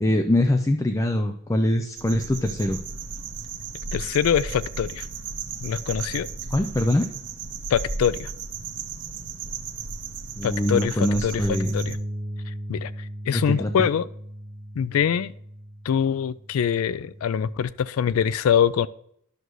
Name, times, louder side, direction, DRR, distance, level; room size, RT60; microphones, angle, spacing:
voice 1, 0.0-2.8 6.5-7.1 10.4-11.7 13.3-13.9, left 1 dB, 15° left, 7 dB, 0.4 m, -23 dB
sound 1, 2.0-12.0, right 4 dB, 60° right, 0.9 m, -35 dB
voice 2, 3.9-5.1 5.6-6.3 7.7-8.3 10.4-11.4 11.7-12.0 12.5-14.1 14.8-15.3 15.8-18.9, left 8 dB, 80° left, 17 dB, 0.3 m, -24 dB
Bass guitar, 11.4-17.6, right 1 dB, 10° right, 0.8 m, -35 dB
11.0 x 6.6 x 3.1 m, 0.68 s
head